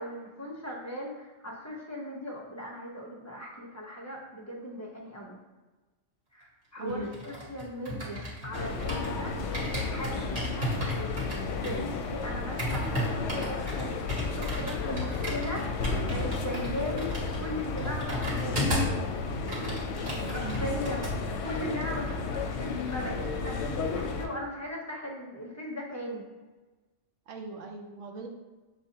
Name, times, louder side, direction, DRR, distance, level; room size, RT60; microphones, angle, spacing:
voice 1, 0.0-5.4 6.3-9.4 9.7-11.3 11.6-19.0 20.3-26.2, equal, 20° left, -3 dB, 0.6 m, -38 dB
voice 2, 6.8-7.1 13.3-13.5 20.1-20.8 27.3-28.3, right 3 dB, 85° right, 3 dB, 1.0 m, -40 dB
sound 1, 6.9-9.2 9.5-19.0 19.3-21.1 21.4-21.7, equal, 40° right, 1.3 m, -34 dB
sound 2, 8.5-24.3, left 4 dB, 70° left, 0.8 m, -33 dB
sound 3, 20.3-22.9, left 3 dB, 15° right, 1.1 m, -44 dB
6.9 x 2.4 x 2.7 m, 1.2 s
omnidirectional pair, 1.3 m